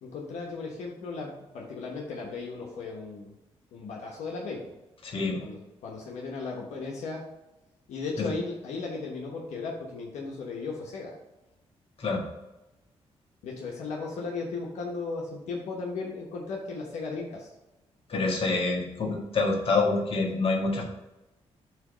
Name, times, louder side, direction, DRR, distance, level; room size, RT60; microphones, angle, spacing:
voice 1, 0.0-3.3 3.7-4.7 5.4-7.2 7.9-11.1 13.4-17.5, left 4 dB, 90° left, -2 dB, 1.1 m, -36 dB
voice 2, 5.0-5.4 8.2-8.3 12.0-12.2 18.1-20.8, left 3 dB, 55° left, 0 dB, 1.7 m, -26 dB
8.0 x 3.1 x 5.1 m, 0.98 s
cardioid pair, 75°, 11 cm